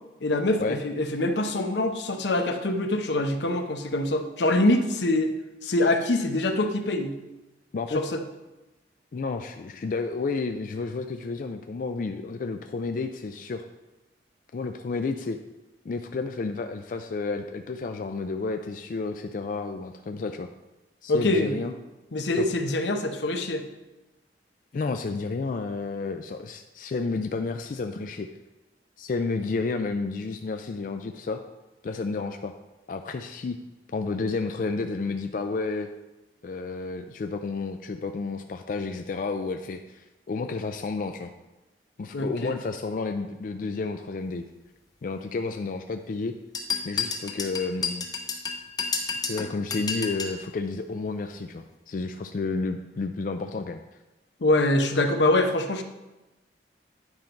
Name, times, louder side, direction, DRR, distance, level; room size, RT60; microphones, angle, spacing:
voice 1, 0.2-5.3 5.6-7.1 7.9-8.2 21.1-21.6 22.1-23.6 42.1-42.6 54.4-55.8, left 1 dB, 80° left, 6 dB, 0.8 m, -24 dB
voice 2, 9.1-13.7 14.5-15.4 15.8-20.5 21.0-21.7 22.4-22.5 24.7-28.3 29.0-31.4 31.8-32.5 32.9-33.6 33.9-35.9 36.4-41.3 42.0-44.4 45.0-46.3 46.8-48.1 49.3-53.8, left 4 dB, 50° left, 6 dB, 0.3 m, -31 dB
sound 1, 46.5-50.4, left 4 dB, 20° left, 0.8 m, -30 dB
9.7 x 4.4 x 5.2 m, 1.1 s
head